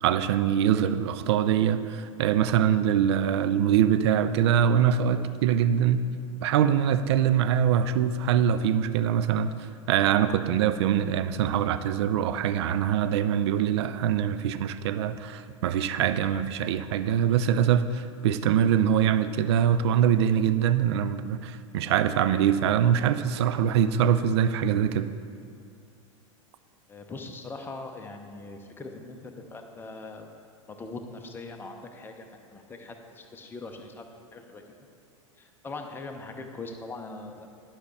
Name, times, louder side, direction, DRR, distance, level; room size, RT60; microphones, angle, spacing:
voice 1, 0.0-6.0 6.4-9.5 9.9-25.1, right 9 dB, 55° right, 12 dB, 0.4 m, -23 dB
voice 2, 26.9-30.3 30.7-34.9 35.4-37.5, left 3 dB, 10° left, 4 dB, 0.7 m, -41 dB
11.5 x 5.7 x 3.3 m, 2.4 s
figure-of-eight pair, 90°, 17 cm